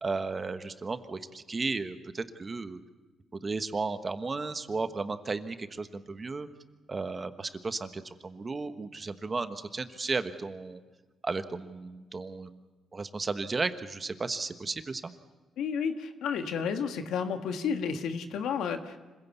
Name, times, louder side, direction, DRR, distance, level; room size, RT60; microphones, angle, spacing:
voice 1, 0.0-2.8 3.4-6.5 6.9-10.8 11.2-12.6 12.9-15.1, right 4 dB, 30° right, 10 dB, 1.2 m, -34 dB
voice 2, 15.6-19.0, left 6 dB, 80° left, 7 dB, 1.6 m, -31 dB
25.5 x 16.0 x 8.2 m, 1.3 s
cardioid pair, 90°, 0 cm